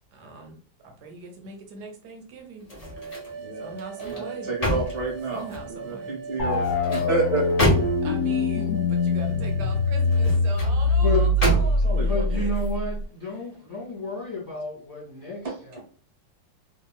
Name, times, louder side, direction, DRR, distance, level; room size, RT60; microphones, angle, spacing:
voice 1, 0.1-0.6 0.8-2.7 3.0-3.3 3.6-4.5 5.3-6.1 8.0-12.5 13.4-13.5, right 3 dB, 65° right, 3 dB, 1.2 m, -41 dB
sound 1, 2.6-3.4 3.8-5.7 6.5-8.2 10.0-10.8 11.4-12.0 12.5-12.7, left 1 dB, 30° left, 0.8 m, -28 dB
sound 2, 2.8-10.4, right 5 dB, 85° right, 1.4 m, -40 dB
voice 2, 3.4-7.5 11.8-12.5 15.4-15.5, right 3 dB, 45° right, 0 dB, 1.0 m, -30 dB
sound 3, 6.4-13.0, left 2 dB, 80° left, 0.8 m, -23 dB
voice 3, 11.9-15.8, left 2 dB, 10° left, -5 dB, 1.3 m, -31 dB
3.0 x 2.9 x 2.2 m, 0.42 s
omnidirectional pair, 2.1 m